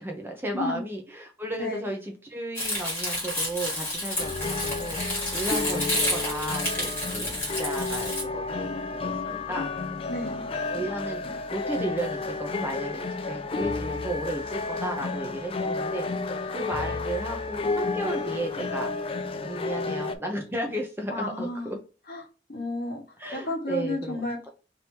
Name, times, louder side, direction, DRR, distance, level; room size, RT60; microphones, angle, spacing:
voice 1, 0.0-9.7 10.7-16.1 16.5-18.9 19.4-21.8 23.2-24.3, right 1 dB, 10° right, 2 dB, 0.7 m, -34 dB
Crumpling crinkling, 2.6-8.2, left 1 dB, 10° left, 1.7 m, -30 dB
sound 1, 4.2-20.1, left 3 dB, 30° left, 0.3 m, -31 dB
voice 2, 10.1-10.5 21.1-21.7 22.1-22.2 22.5-23.0 23.3-24.5, left 2 dB, 55° left, 0 dB, 1.2 m, -32 dB
3.4 x 2.9 x 4.5 m, 0.34 s
head